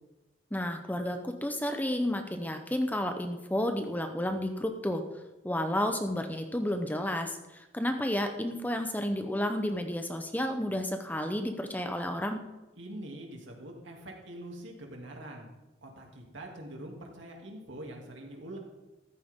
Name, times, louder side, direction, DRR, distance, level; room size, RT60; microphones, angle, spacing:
voice 1, 0.5-5.0 5.4-12.4, left 1 dB, 10° left, 6 dB, 0.8 m, -31 dB
voice 2, 12.8-15.5 15.8-18.6, right 1 dB, 75° right, 0 dB, 2.7 m, -44 dB
14.0 x 13.5 x 3.7 m, 1.0 s
head